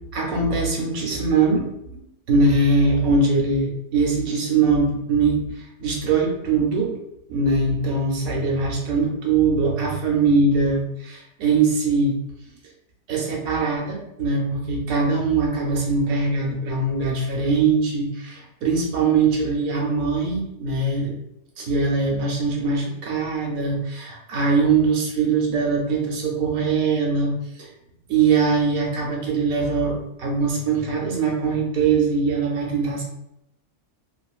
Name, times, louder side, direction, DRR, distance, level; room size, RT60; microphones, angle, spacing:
voice 1, 0.1-2.0 2.3-6.9 7.3-12.2 13.1-21.2 21.6-27.7 28.1-33.0, right 4 dB, 70° right, 0 dB, 1.1 m, -22 dB
3.0 x 2.6 x 2.3 m, 0.80 s
omnidirectional pair, 1.6 m